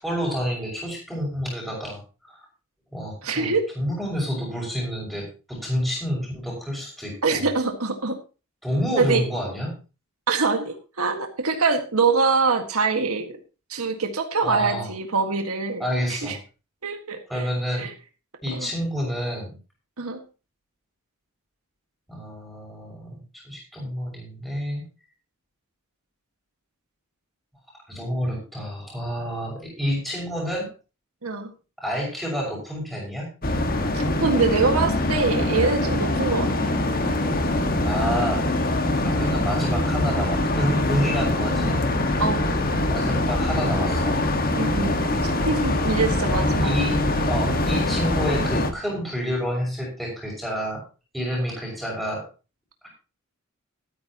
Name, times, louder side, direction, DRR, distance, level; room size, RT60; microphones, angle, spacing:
voice 1, 0.0-2.0 2.3-2.4 2.9-7.5 8.6-9.7 14.4-14.9 15.8-16.4 17.3-17.9 18.4-19.5 22.1-24.8 27.9-30.7 31.8-33.3 37.8-38.7 39.0-41.8 42.9-44.2 46.6-50.8 51.1-52.2, equal, ahead, -3 dB, 6.1 m, -29 dB
voice 2, 3.2-3.6 7.2-8.2 9.0-9.2 10.3-13.4 13.7-15.8 16.1-16.4 16.8-17.4 17.8-17.9 18.6-18.7 20.0-20.2 31.2-31.5 33.9-36.7 42.2-42.5 44.5-44.9 45.2-46.8, right 4 dB, 85° right, 5 dB, 1.8 m, -24 dB
sound 1, 33.4-48.7, left 1 dB, 40° left, 1.5 m, -23 dB
13.5 x 13.5 x 2.9 m, 0.32 s
head